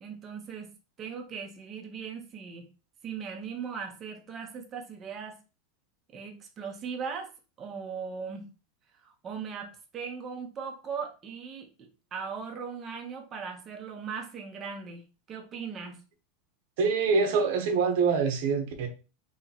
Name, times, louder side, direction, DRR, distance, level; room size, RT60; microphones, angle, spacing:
voice 1, 0.0-0.7 1.0-2.7 3.0-5.4 6.1-7.3 7.6-8.4 9.0-15.0 15.3-16.0, right 6 dB, 25° right, 3 dB, 0.8 m, -38 dB
voice 2, 16.8-18.9, right 5 dB, 60° right, 4 dB, 0.9 m, -25 dB
3.0 x 2.8 x 4.0 m, 0.32 s
supercardioid pair, 145°, 0 cm